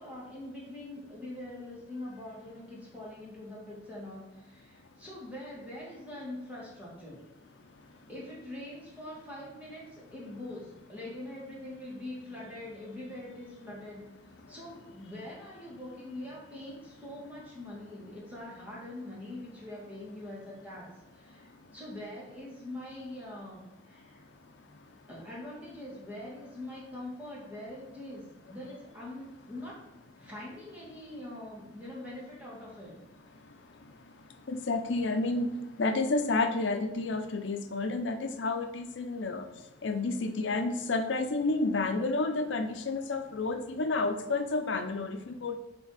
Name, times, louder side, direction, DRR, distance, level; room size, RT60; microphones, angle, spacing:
voice 1, 0.0-7.2 8.1-14.1 14.5-24.2 25.1-29.9 30.2-33.0, left 1 dB, 10° right, -6 dB, 2.2 m, -43 dB
voice 2, 34.5-35.5 35.8-39.4 39.8-45.6, left 3 dB, 80° left, 7 dB, 0.6 m, -30 dB
9.8 x 3.5 x 4.1 m, 0.99 s
head